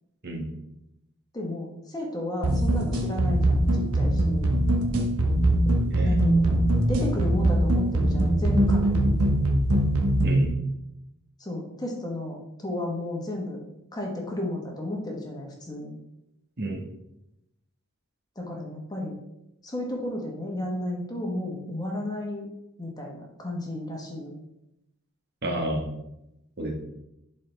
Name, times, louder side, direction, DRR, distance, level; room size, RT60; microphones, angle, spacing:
voice 1, 1.3-4.5 6.0-9.2 11.4-13.6 13.9-15.9 18.4-19.2 19.6-22.5 22.8-24.3, left 1 dB, 20° left, 0 dB, 1.2 m, -33 dB
sound 1, 2.4-10.5, right 1 dB, 80° right, 1.0 m, -22 dB
voice 2, 5.8-6.2 10.2-10.5 16.6-16.8 25.4-25.9 26.6-26.7, right 1 dB, 45° right, 0 dB, 1.4 m, -30 dB
11.0 x 4.3 x 3.3 m, 0.86 s
head